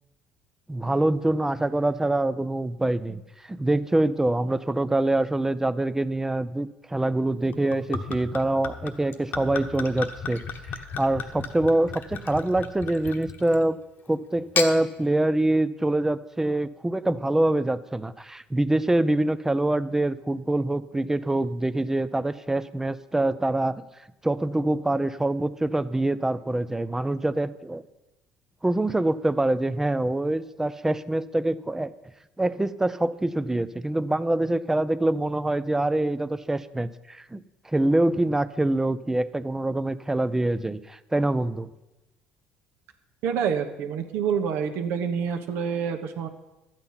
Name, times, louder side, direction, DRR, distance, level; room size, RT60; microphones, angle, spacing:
voice 1, 0.7-10.4 10.7-13.8 14.1-23.8 24.2-27.8 28.6-31.9 32.4-37.4 37.6-41.7, right 1 dB, 10° right, 15 dB, 0.6 m, -25 dB
Gurgling / Chink clink / Liquid, 7.5-13.7 14.3-14.7, left 5 dB, 55° left, 1.2 m, -34 dB
voice 2, 43.2-46.3, right 7 dB, 70° right, 6 dB, 1.2 m, -27 dB
12.0 x 9.0 x 5.7 m, 1.0 s
supercardioid pair, 75°, 4 cm